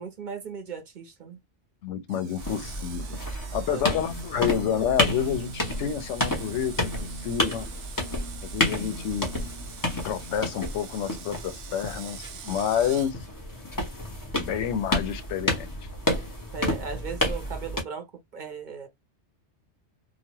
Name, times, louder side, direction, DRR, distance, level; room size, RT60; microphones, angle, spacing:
voice 1, 0.0-1.4 3.7-4.0 16.5-18.1 18.3-18.9, right 5 dB, 50° right, 0.7 m, -37 dB
voice 2, 1.8-3.2 3.5-7.7 8.4-9.3 10.0-13.2 14.4-15.7, left 8 dB, 85° left, 0.9 m, -29 dB
Screech, 2.1-13.1, right 8 dB, 85° right, 1.0 m, -45 dB
sound 1, 2.4-17.8, left 1 dB, 20° left, 0.8 m, -30 dB
3.0 x 2.1 x 2.8 m
omnidirectional pair, 1.2 m